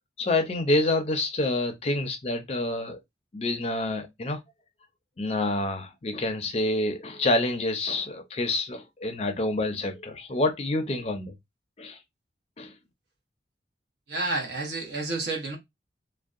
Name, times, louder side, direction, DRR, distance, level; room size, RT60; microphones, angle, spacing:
voice 1, 0.2-3.0 3.3-4.4 5.2-11.3 11.8-12.0 12.6-12.8, left 2 dB, 35° left, 0.4 m, -27 dB
voice 2, 14.1-15.6, right 2 dB, 65° right, 0.8 m, -30 dB
2.6 x 2.1 x 2.4 m
head